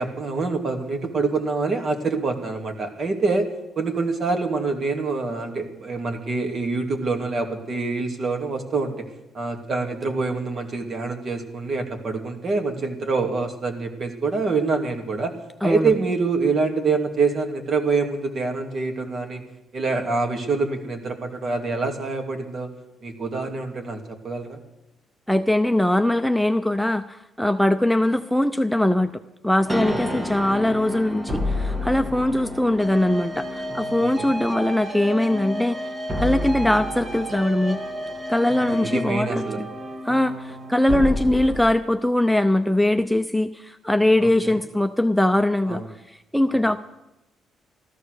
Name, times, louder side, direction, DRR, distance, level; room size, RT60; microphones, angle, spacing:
voice 1, 0.0-3.5 3.8-9.1 9.3-15.3 15.6-19.4 19.7-22.7 23.0-24.6 29.9-30.3 34.0-34.4 38.7-39.6 44.2-44.6 45.7-45.9 46.5-46.6, right 4 dB, 50° right, 4 dB, 2.4 m, -26 dB
voice 2, 15.6-15.9 25.3-29.1 29.4-35.8 36.2-37.8 38.3-39.7 40.0-45.8 46.3-46.8, left 1 dB, ahead, 8 dB, 0.6 m, -21 dB
sound 1, 29.7-41.6, equal, 20° right, 1.9 m, -30 dB
14.0 x 13.0 x 6.5 m, 0.94 s
cardioid pair, 90°, 0 cm